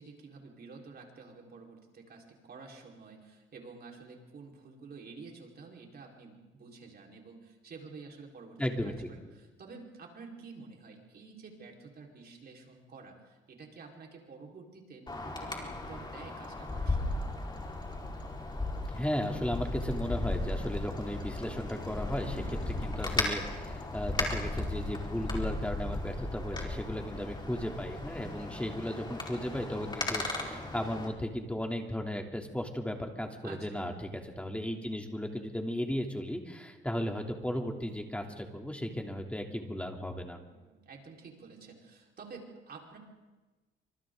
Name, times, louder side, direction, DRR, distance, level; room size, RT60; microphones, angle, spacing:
voice 1, 0.0-17.2 22.2-22.6 33.4-33.9 40.4-43.0, right 4 dB, 50° right, 0 dB, 4.6 m, -50 dB
voice 2, 8.6-9.1 18.9-22.4 22.8-40.4, equal, 5° left, 2 dB, 3.1 m, -35 dB
Wind, 15.1-31.1, left 2 dB, 20° left, 4.6 m, -36 dB
28.5 x 26.0 x 3.9 m, 1.2 s
cardioid pair, 90°, 20 cm